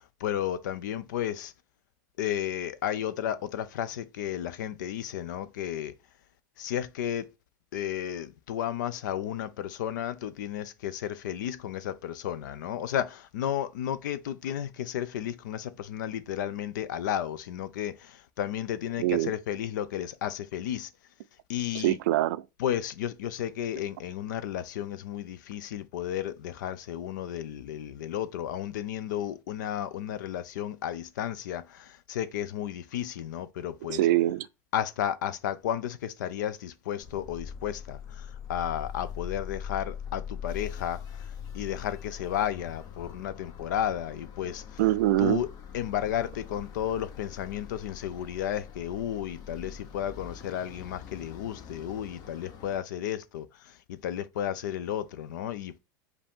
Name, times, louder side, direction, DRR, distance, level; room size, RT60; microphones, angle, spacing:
voice 1, 0.0-1.5 2.2-5.9 6.6-7.3 7.7-20.9 21.5-22.0 22.6-34.0 34.7-41.2 41.5-44.8 45.2-45.5 45.7-55.8, left 10 dB, 80° left, 0.6 m, -33 dB
voice 2, 19.0-19.3 21.7-22.5 33.9-34.5 44.8-45.4, right 14 dB, 75° right, 0.4 m, -24 dB
sound 1, 37.0-52.8, left 8 dB, 45° left, 0.8 m, -42 dB
5.1 x 2.7 x 3.6 m
supercardioid pair, 115°, 10 cm